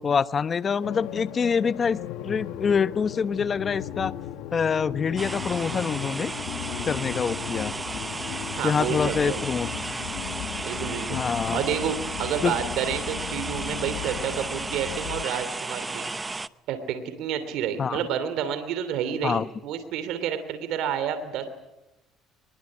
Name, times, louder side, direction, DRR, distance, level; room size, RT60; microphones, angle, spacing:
voice 1, 0.0-2.0 2.2-4.2 4.5-6.3 6.8-7.7 8.6-10.0 11.1-11.6 12.4-12.6 17.8-18.1 19.2-19.5, left 6 dB, 35° left, 15 dB, 0.9 m, -26 dB
sound 1, 0.8-15.2, left 13 dB, 85° left, 1.1 m, -36 dB
sound 2, 5.2-16.5, right 3 dB, 20° right, 0.8 m, -33 dB
voice 2, 8.6-9.4 10.6-16.1 16.7-21.4, right 8 dB, 75° right, 10 dB, 2.9 m, -30 dB
23.0 x 22.0 x 8.7 m, 0.96 s
cardioid pair, 100°, 0 cm